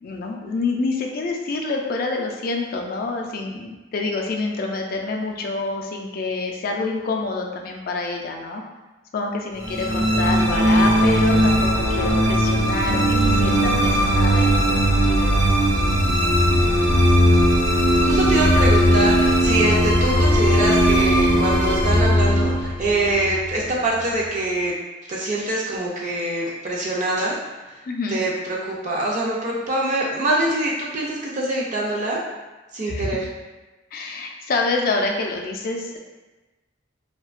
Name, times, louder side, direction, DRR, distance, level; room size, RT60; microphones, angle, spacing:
voice 1, 0.0-8.6 9.1-15.3 27.9-28.2 32.9-33.1 33.9-36.0, left 3 dB, 50° left, 1 dB, 0.3 m, -27 dB
sound 1, 9.6-24.0, equal, 85° right, 0.6 m, -18 dB
voice 2, 18.0-24.7 25.1-27.4 27.7-27.8 28.1-32.2 32.7-33.2, right 2 dB, 40° right, -4 dB, 0.3 m, -24 dB
2.7 x 2.2 x 2.4 m, 1.2 s
head